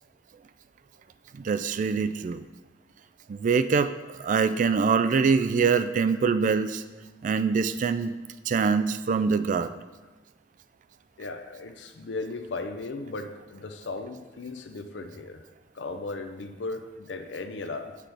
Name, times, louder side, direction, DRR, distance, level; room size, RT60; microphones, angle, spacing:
voice 1, 1.3-2.4 3.3-3.9 4.2-6.8 7.2-8.1 8.5-9.7, right 5 dB, 45° right, 12 dB, 0.3 m, -24 dB
voice 2, 11.2-15.4 15.7-17.9, left 3 dB, 80° left, 7 dB, 0.6 m, -36 dB
6.1 x 5.9 x 3.4 m, 1.2 s
head